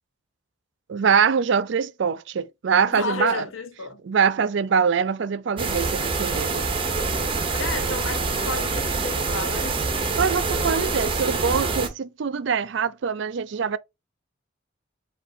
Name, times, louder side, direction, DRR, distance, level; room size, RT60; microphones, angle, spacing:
voice 1, 0.9-3.4 4.0-6.7 10.2-13.8, right 6 dB, 60° right, 0.4 m, -23 dB
voice 2, 2.9-4.0 7.5-9.8, left 4 dB, 80° left, 0.9 m, -32 dB
sound 1, 5.6-11.9, right 4 dB, 25° right, 0.8 m, -25 dB
5.1 x 2.6 x 3.8 m
head